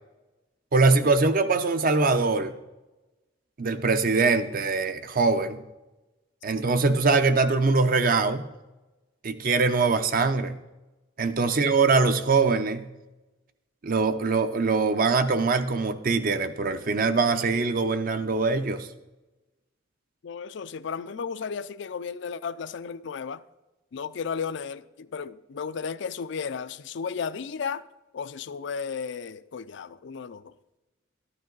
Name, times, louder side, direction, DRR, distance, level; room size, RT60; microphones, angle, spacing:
voice 1, 0.7-2.5 3.6-5.6 6.4-8.4 9.2-10.6 11.2-12.9 13.8-18.9, right 4 dB, 45° right, 0.7 m, -23 dB
voice 2, 20.2-23.4 23.9-27.8 28.1-30.5, left 6 dB, 65° left, 0.4 m, -34 dB
13.0 x 9.9 x 3.9 m
head